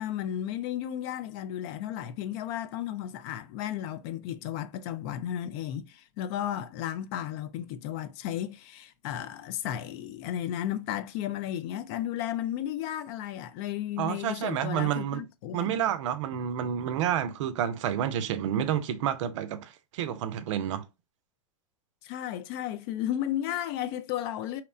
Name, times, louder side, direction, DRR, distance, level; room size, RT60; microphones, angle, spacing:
voice 1, 0.0-15.8 22.0-24.6, left 11 dB, 50° left, 0.4 m, -34 dB
voice 2, 14.0-15.2 15.5-20.8, right 10 dB, 65° right, 0.4 m, -29 dB
2.9 x 2.1 x 2.4 m
hypercardioid pair, 110°, 17 cm